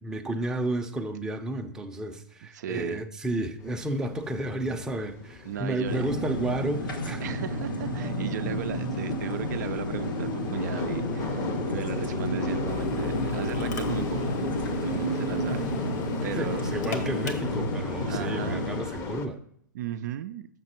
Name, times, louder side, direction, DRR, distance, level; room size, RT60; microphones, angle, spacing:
voice 1, 0.0-7.2 16.4-19.4, right 1 dB, 5° right, 3 dB, 0.6 m, -32 dB
voice 2, 2.5-3.0 5.4-6.1 7.2-14.3 14.8-15.7 16.2-16.7 17.8-18.7 19.7-20.5, right 10 dB, 60° right, 10 dB, 0.4 m, -36 dB
sound 1, 3.6-19.3, left 5 dB, 30° left, 0.7 m, -37 dB
sound 2, 5.8-18.8, equal, 80° left, 1.4 m, -31 dB
Drill, 12.7-17.7, left 4 dB, 65° left, 1.2 m, -41 dB
6.7 x 5.9 x 4.3 m, 0.68 s
hypercardioid pair, 125°, 11 cm